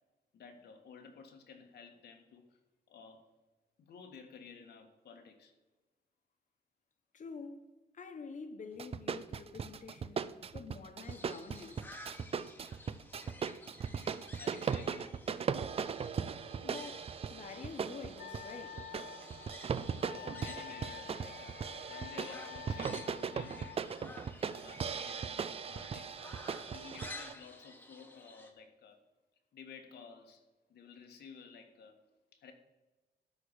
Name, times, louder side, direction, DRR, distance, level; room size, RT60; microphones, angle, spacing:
voice 1, 0.3-2.6 2.9-3.3 3.8-5.5 14.1-15.2 19.8-26.2 26.6-29.0 29.5-32.0 32.3-32.5, left 5 dB, 85° left, 1.8 m, -54 dB
voice 2, 7.1-7.6 7.9-11.9 16.6-18.8, left 5 dB, 50° left, 1.3 m, -48 dB
sound 1, 8.8-27.3, right 6 dB, 35° right, 0.5 m, -38 dB
sound 2, 11.0-28.5, left 2 dB, 10° left, 1.2 m, -54 dB
Wind instrument woodwind instrument, 18.2-23.8, left 12 dB, 65° left, 0.5 m, -49 dB
12.5 x 4.8 x 7.3 m
wide cardioid pair, 145°, 17 cm